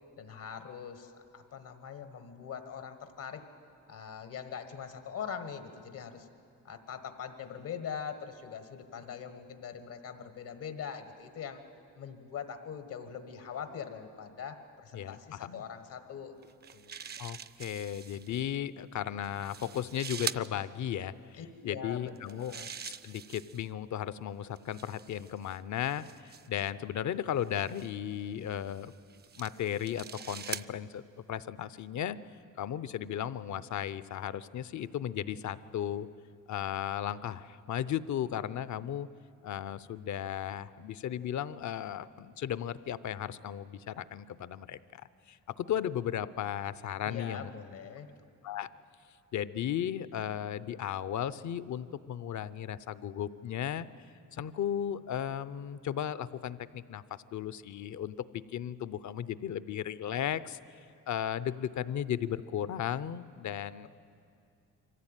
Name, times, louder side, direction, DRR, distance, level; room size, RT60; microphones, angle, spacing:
voice 1, 0.2-3.4 3.9-6.3 6.6-11.6 12.0-16.4 16.7-17.0 21.4-22.7 47.0-48.1, left 7 dB, 80° left, 8 dB, 1.6 m, -42 dB
voice 2, 14.9-15.6 17.2-21.4 21.6-22.5 22.8-28.9 29.4-31.0 31.3-32.2 32.6-36.1 36.5-39.1 39.4-45.0 45.3-47.5 48.4-48.7 49.3-53.9 54.3-60.8 61.1-63.9, left 10 dB, 65° left, 16 dB, 0.7 m, -35 dB
Tape Measure, 16.4-18.4 19.2-20.5 22.1-23.7 24.6-26.7 27.5-27.9 28.7-30.7, right 7 dB, 30° right, 0.4 m, -43 dB
23.5 x 15.5 x 9.0 m, 2.5 s
cardioid pair, 100°, 32 cm